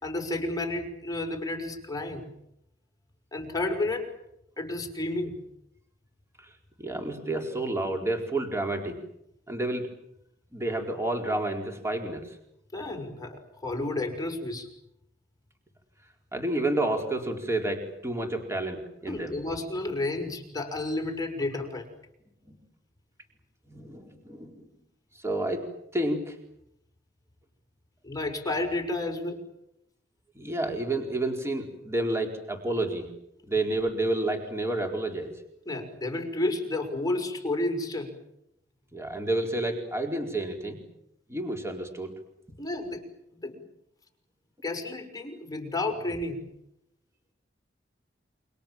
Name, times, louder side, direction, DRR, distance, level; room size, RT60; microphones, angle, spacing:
voice 1, 0.0-2.3 3.3-4.1 4.6-5.4 12.7-14.7 19.1-21.9 28.0-29.4 35.7-38.1 42.6-43.6 44.6-46.4, left 2 dB, 20° left, 3 dB, 5.8 m, -31 dB
voice 2, 6.8-9.0 9.5-9.9 10.5-12.4 16.3-19.4 23.7-24.7 25.2-25.7 25.9-26.4 30.3-33.1 33.5-35.4 38.9-40.8 41.3-42.1, right 2 dB, 15° right, 3 dB, 4.4 m, -30 dB
29.0 x 26.0 x 7.5 m, 0.79 s
head